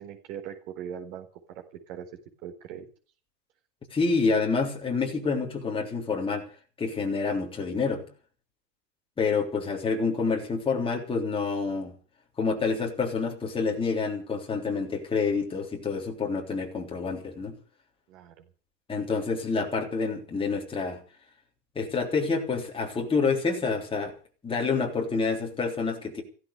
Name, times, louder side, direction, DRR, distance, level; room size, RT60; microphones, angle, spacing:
voice 1, 0.0-2.1 2.4-2.8 18.1-18.5, right 9 dB, 60° right, 3 dB, 4.4 m, -40 dB
voice 2, 3.9-6.5 6.8-8.1 9.2-11.9 12.4-17.6 18.9-21.0 21.8-24.1 24.4-26.2, left 4 dB, 10° left, 0 dB, 3.5 m, -28 dB
16.0 x 13.0 x 6.8 m, 0.40 s
supercardioid pair, 155°, 49 cm